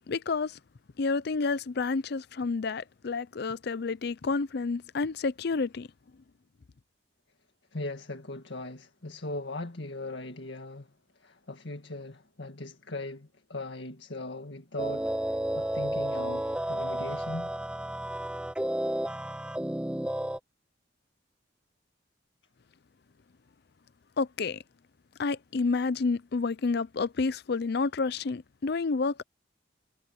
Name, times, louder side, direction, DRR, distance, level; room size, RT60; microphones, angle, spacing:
voice 1, 0.1-0.6 1.0-5.9 24.2-24.6 25.2-29.2, left 4 dB, 60° left, 0.5 m, -29 dB
voice 2, 7.7-10.9 11.2-17.5, left 2 dB, 80° left, 1.9 m, -39 dB
sound 1, 14.8-20.4, right 1 dB, 5° right, 0.4 m, -32 dB
head